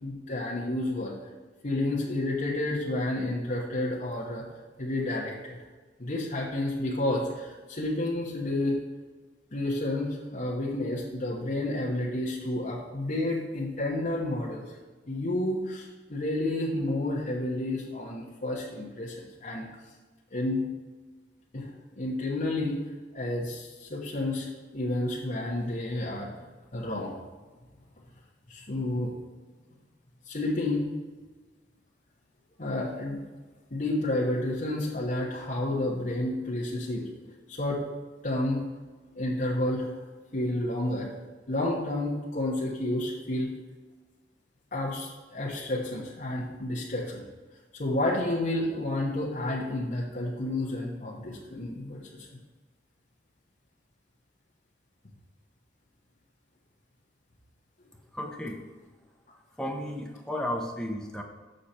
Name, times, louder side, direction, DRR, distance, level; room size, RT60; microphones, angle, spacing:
voice 1, 0.0-1.1 1.6-4.4 4.8-5.6 6.0-8.8 9.5-14.6 15.1-19.7 20.3-20.6 21.5-21.7 22.0-22.8 23.1-26.3 26.7-27.1 28.5-29.1 30.3-30.9 32.6-33.2 33.7-37.8 38.2-38.6 39.1-39.9 40.3-41.1 41.5-43.5 44.7-47.2 47.8-52.3, left 1 dB, 45° left, -5 dB, 1.1 m, -30 dB
voice 2, 57.9-58.7 59.6-61.2, left 1 dB, 5° left, 1 dB, 0.8 m, -34 dB
6.5 x 6.5 x 4.3 m, 1.3 s
head